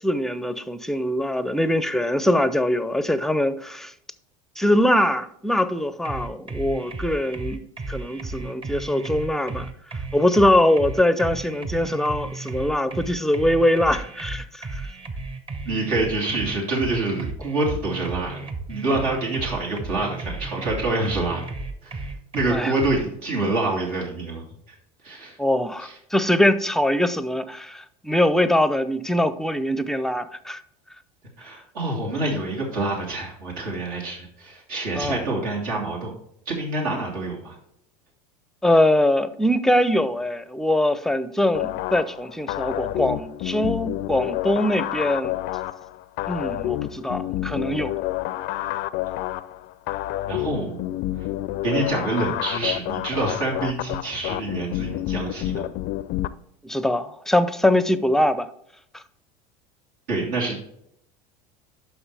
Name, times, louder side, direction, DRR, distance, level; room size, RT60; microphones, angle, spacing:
voice 1, 0.0-3.9 4.6-7.6 7.9-9.7 10.1-14.8 22.5-22.7 25.4-30.6 34.9-35.2 38.6-45.3 46.3-47.9 56.6-58.5 58.9-59.0, left 1 dB, ahead, 0.6 m, -22 dB
sound 1, 6.0-23.0, right 3 dB, 30° right, 1.2 m, -34 dB
voice 2, 15.7-18.4 18.7-21.4 21.8-22.1 22.3-24.4 25.0-25.4 25.8-26.0 31.4-36.1 36.5-37.6 50.3-50.8 51.2-51.3 51.6-55.7 60.1-60.6, right 2 dB, 70° right, 2.9 m, -26 dB
sound 2, 41.5-56.3, left 15 dB, 55° left, 0.5 m, -29 dB
11.0 x 5.9 x 3.4 m
hypercardioid pair, 80°, 19 cm